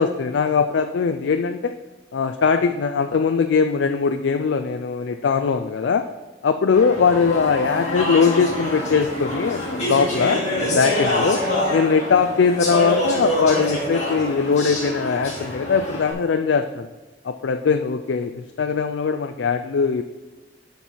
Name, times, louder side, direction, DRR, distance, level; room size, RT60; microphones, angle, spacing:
voice 1, 0.0-1.7 2.1-6.0 6.4-11.4 11.7-16.9 17.2-20.0, left 5 dB, 85° left, 7 dB, 0.4 m, -21 dB
Speech / Chatter, 6.7-16.1, left 1 dB, 40° left, 2.5 m, -26 dB
12.0 x 4.6 x 4.3 m, 1.2 s
head